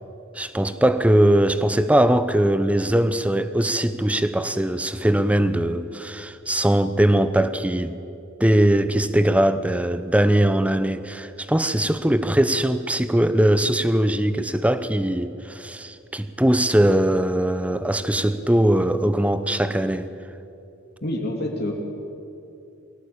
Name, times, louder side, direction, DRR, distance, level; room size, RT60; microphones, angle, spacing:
voice 1, 0.3-8.0 8.4-20.1, right 1 dB, 5° right, 0.8 m, -20 dB
voice 2, 21.0-21.7, left 1 dB, 55° left, 2.9 m, -27 dB
23.0 x 17.0 x 8.6 m
head